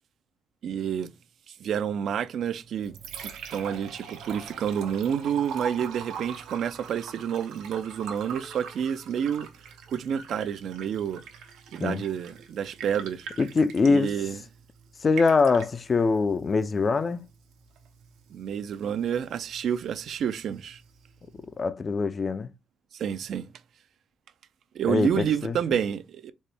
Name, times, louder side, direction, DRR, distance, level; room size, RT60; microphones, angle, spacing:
voice 1, 0.6-1.1 1.5-2.9 3.2-9.5 9.9-11.2 11.7-13.3 13.9-14.4 18.3-20.8 22.9-23.5 24.7-26.3, right 8 dB, 65° right, 0.3 m, -29 dB
Liquid, 2.6-21.6, right 7 dB, 85° right, 0.7 m, -43 dB
voice 2, 13.4-14.1 15.0-17.2 21.4-22.5 24.9-25.6, left 4 dB, 35° left, 0.3 m, -23 dB
4.2 x 2.1 x 3.3 m
cardioid pair, 90°, 0 cm